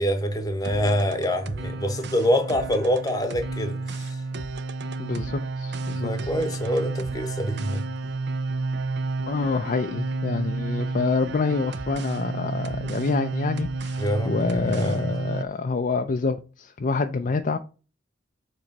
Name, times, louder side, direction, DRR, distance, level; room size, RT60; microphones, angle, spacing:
voice 1, 0.0-4.1 6.0-7.8 14.0-15.0, equal, 20° left, 0.9 m, -25 dB
sound 1, 0.6-15.4, right 3 dB, 60° right, 0.6 m, -31 dB
voice 2, 5.0-6.3 9.3-17.6, left 4 dB, 45° left, 0.4 m, -27 dB
7.2 x 3.1 x 5.2 m
head